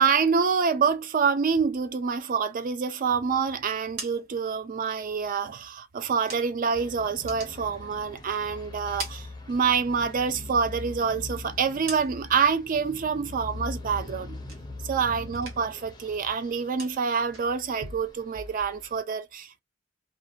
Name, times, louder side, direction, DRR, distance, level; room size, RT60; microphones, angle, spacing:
voice 1, 0.0-14.4 14.8-19.6, right 6 dB, 45° right, 0.4 m, -26 dB
sound 1, 3.7-6.8 7.1-8.4 8.7-10.0 10.4-12.5 12.9-13.3 13.7-15.0 15.3-19.0, right 2 dB, 75° right, 1.0 m, -44 dB
sound 2, 6.7-19.0, left 2 dB, 20° left, 0.5 m, -42 dB
2.5 x 2.1 x 2.4 m
head